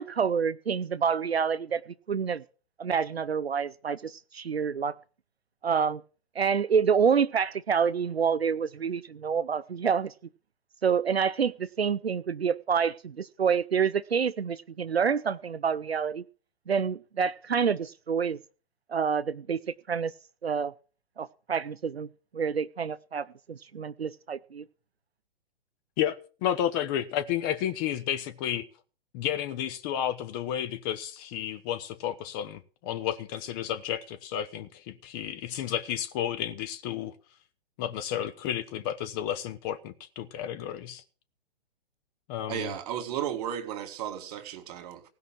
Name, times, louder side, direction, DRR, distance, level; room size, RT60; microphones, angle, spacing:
voice 1, 0.0-1.8 2.1-2.4 2.8-5.0 5.6-6.0 6.4-10.1 10.8-16.2 16.7-18.4 18.9-19.6 19.9-20.1 20.4-20.7 21.2-22.1 22.3-24.6, right 6 dB, 80° right, 0.6 m, -27 dB
voice 2, 26.4-28.6 29.1-37.1 37.8-41.0 42.3-42.7, left 10 dB, 20° left, 0.7 m, -32 dB
voice 3, 42.5-45.0, right 10 dB, 40° right, 2.3 m, -34 dB
16.5 x 5.7 x 7.6 m
figure-of-eight pair, 120°, 31 cm